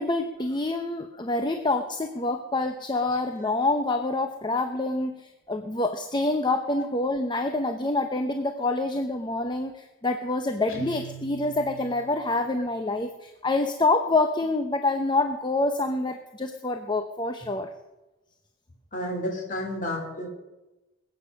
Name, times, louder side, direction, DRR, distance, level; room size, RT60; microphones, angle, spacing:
voice 1, 0.0-17.7, left 2 dB, 20° left, 7 dB, 0.7 m, -27 dB
Guitar, 10.7-12.4, right 3 dB, 70° left, 2.5 m, -42 dB
voice 2, 18.9-20.3, left 1 dB, 40° left, 2 dB, 3.6 m, -31 dB
21.0 x 8.6 x 6.4 m, 1.1 s
head